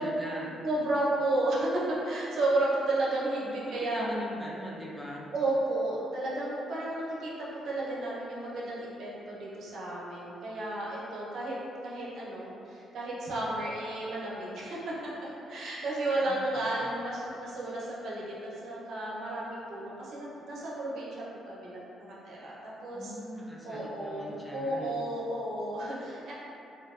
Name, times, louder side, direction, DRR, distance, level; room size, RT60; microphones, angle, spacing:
voice 1, 0.0-0.5 3.4-5.3 16.1-17.3 22.9-25.0, equal, 15° left, -4 dB, 0.4 m, -41 dB
voice 2, 0.6-4.1 5.3-11.6 11.8-23.1 23.6-26.3, right 2 dB, 70° right, -6 dB, 0.5 m, -32 dB
2.5 x 2.1 x 2.3 m, 2.7 s
cardioid pair, 90°, 0 cm